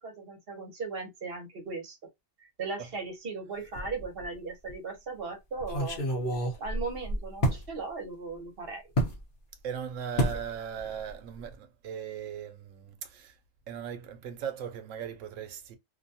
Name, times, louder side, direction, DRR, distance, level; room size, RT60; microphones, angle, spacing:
voice 1, 0.0-2.0 2.6-6.0 6.6-8.9 10.3-10.4, right 4 dB, 55° right, 0.9 m, -37 dB
sound 1, 3.7-4.3 4.7-4.8 5.6-7.7 9.0-9.2 10.2-10.5 10.8-11.1 11.4-11.5, equal, 50° left, 0.9 m, -29 dB
voice 2, 9.6-13.3 13.7-15.8, right 8 dB, 85° right, 1.0 m, -38 dB
2.5 x 2.2 x 2.6 m
omnidirectional pair, 1.3 m